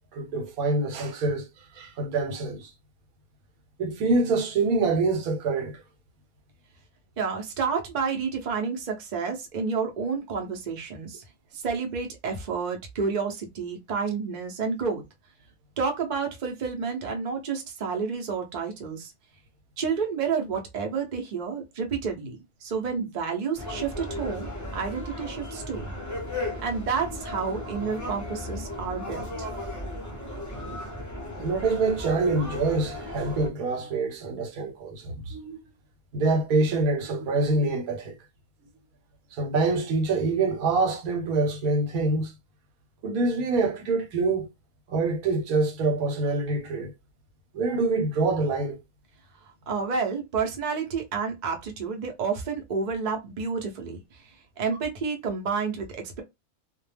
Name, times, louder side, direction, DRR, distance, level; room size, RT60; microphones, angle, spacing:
voice 1, 0.1-1.5 1.7-2.7 3.8-5.8 31.4-35.6 36.1-38.2 39.3-42.3 43.0-44.5 44.9-46.9 47.5-48.8, right 3 dB, 75° right, 1.1 m, -25 dB
voice 2, 7.2-11.2 11.5-15.0 15.8-19.1 19.8-25.9 26.6-29.5 49.7-54.2 54.6-56.2, right 5 dB, 50° right, 0.5 m, -30 dB
sound 1, 23.6-33.5, left 1 dB, 20° left, 0.5 m, -36 dB
2.3 x 2.1 x 3.3 m
omnidirectional pair, 1.5 m